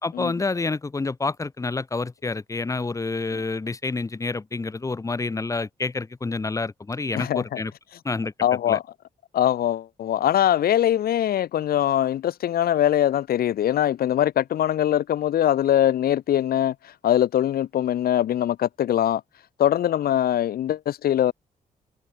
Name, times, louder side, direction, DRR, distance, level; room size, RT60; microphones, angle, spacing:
voice 1, 0.0-7.7 8.0-8.3 8.7-8.8, left 3 dB, 20° left, 4.0 m, -28 dB
voice 2, 7.1-7.6 8.4-8.8 9.3-19.2 19.6-21.3, left 11 dB, 75° left, 3.8 m, -22 dB
cardioid pair, 140°, 16 cm